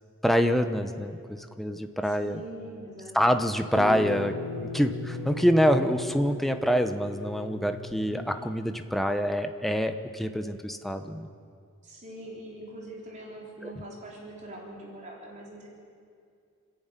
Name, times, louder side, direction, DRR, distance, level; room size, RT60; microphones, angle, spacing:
voice 1, 0.2-2.4 3.1-11.3 13.6-13.7, equal, ahead, 7 dB, 0.9 m, -26 dB
voice 2, 2.0-3.2 11.8-15.7, right 1 dB, 35° right, -3 dB, 4.0 m, -43 dB
sound 1, 3.7-8.7, left 2 dB, 55° left, 1.7 m, -37 dB
28.5 x 11.0 x 9.1 m, 2.3 s
head